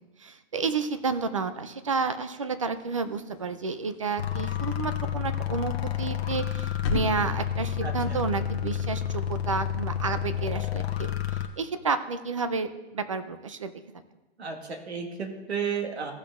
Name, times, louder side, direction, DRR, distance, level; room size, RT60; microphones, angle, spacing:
voice 1, 0.2-11.1 11.6-13.7, right 4 dB, 30° right, 12 dB, 0.4 m, -31 dB
sound 1, 2.7-11.7, left 3 dB, 25° left, 1.1 m, -41 dB
sound 2, 4.2-11.5, left 10 dB, 70° left, 1.1 m, -30 dB
voice 2, 7.8-8.2 14.4-16.1, right 6 dB, 75° right, 4 dB, 2.0 m, -33 dB
16.0 x 5.9 x 3.6 m, 1.1 s
hypercardioid pair, 170°, 33 cm